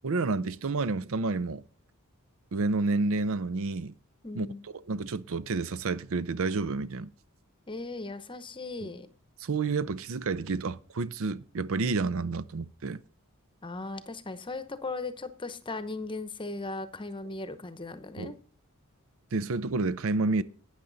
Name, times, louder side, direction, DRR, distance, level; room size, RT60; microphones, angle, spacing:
voice 1, 0.0-1.6 2.5-3.9 4.3-4.5 4.9-7.1 9.4-13.0 18.2-18.4 19.3-20.4, right 3 dB, 65° right, 0.6 m, -29 dB
voice 2, 4.2-4.6 7.7-9.1 13.6-18.4, left 3 dB, 25° left, 0.9 m, -37 dB
12.0 x 8.9 x 4.0 m
head